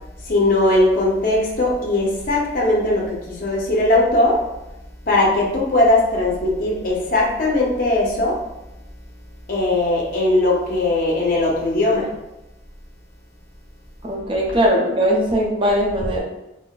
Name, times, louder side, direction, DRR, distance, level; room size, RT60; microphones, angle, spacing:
voice 1, 0.2-4.4 5.1-8.4 9.5-12.1, left 2 dB, 50° left, -3 dB, 0.7 m, -19 dB
voice 2, 14.0-16.2, equal, 30° right, -2 dB, 0.5 m, -19 dB
3.7 x 2.1 x 2.3 m, 0.94 s
head